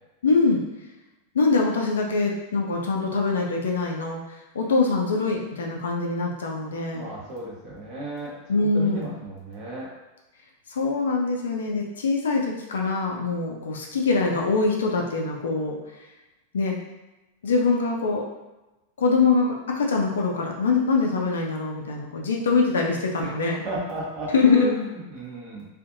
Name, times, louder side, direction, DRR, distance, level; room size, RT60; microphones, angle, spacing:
voice 1, 0.2-0.7 1.3-7.1 8.5-9.0 10.7-15.8 16.5-16.8 17.4-18.2 19.0-23.6 24.3-24.7, left 4 dB, 65° left, 0 dB, 0.4 m, -23 dB
voice 2, 6.9-9.9 23.2-25.7, equal, 40° right, -6 dB, 1.0 m, -34 dB
2.5 x 2.4 x 2.6 m, 1.0 s
figure-of-eight pair, 90°, 0 cm